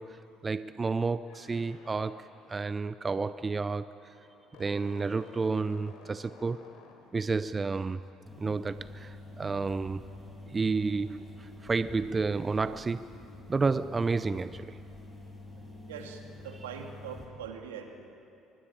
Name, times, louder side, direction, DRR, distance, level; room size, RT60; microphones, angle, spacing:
voice 1, 0.0-4.1 4.6-6.7 7.1-8.0 8.4-10.1 10.5-13.1 13.5-14.8, right 4 dB, 30° right, 0.6 m, -31 dB
sound 1, 1.3-7.4, left 4 dB, 65° left, 3.7 m, -55 dB
sound 2, 8.3-17.3, left 2 dB, 5° left, 7.4 m, -47 dB
voice 2, 15.9-18.1, right 7 dB, 80° right, 2.2 m, -42 dB
23.5 x 21.5 x 8.8 m
hypercardioid pair, 55°, 0 cm